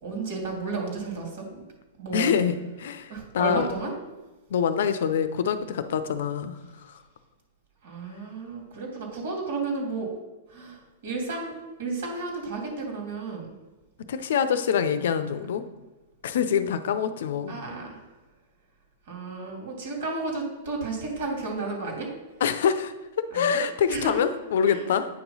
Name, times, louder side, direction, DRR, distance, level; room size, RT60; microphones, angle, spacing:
voice 1, 0.0-1.6 2.0-2.3 3.1-3.9 7.8-10.1 10.5-13.5 17.5-18.0 19.1-22.1 23.3-23.6 23.9-24.2 24.6-24.8, right 3 dB, 70° right, 0 dB, 2.5 m, -32 dB
voice 2, 2.1-3.7 4.5-6.6 14.1-15.6 16.2-17.6 22.4-22.9 23.3-25.1, left 7 dB, 70° left, 11 dB, 0.5 m, -25 dB
8.7 x 3.0 x 5.5 m, 1.1 s
hypercardioid pair, 140°, 0 cm